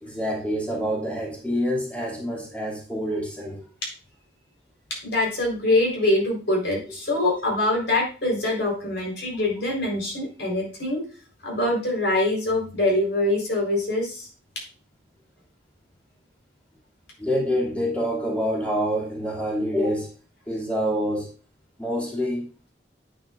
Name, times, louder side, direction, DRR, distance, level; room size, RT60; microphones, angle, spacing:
voice 1, 0.0-3.7 7.2-7.4 17.2-20.1 20.5-21.3 21.8-22.5, equal, 10° left, -4 dB, 2.6 m, -26 dB
voice 2, 5.0-11.0 11.4-14.3, left 1 dB, 80° left, -2 dB, 4.3 m, -24 dB
9.2 x 8.5 x 2.5 m, 0.36 s
head